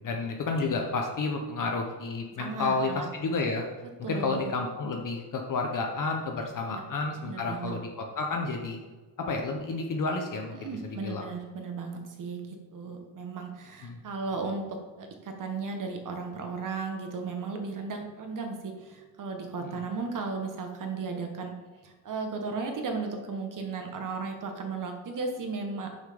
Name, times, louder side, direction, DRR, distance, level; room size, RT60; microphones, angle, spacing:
voice 1, 0.0-3.7 4.0-8.8 9.2-11.2 13.8-14.0 19.6-19.8, left 3 dB, 50° left, 2 dB, 0.8 m, -31 dB
voice 2, 2.4-3.1 4.0-4.5 6.7-6.8 7.2-7.7 10.6-21.6 21.8-26.0, right 4 dB, 50° right, 4 dB, 1.2 m, -35 dB
6.3 x 5.7 x 5.0 m, 1.3 s
cardioid pair, 150°, 42 cm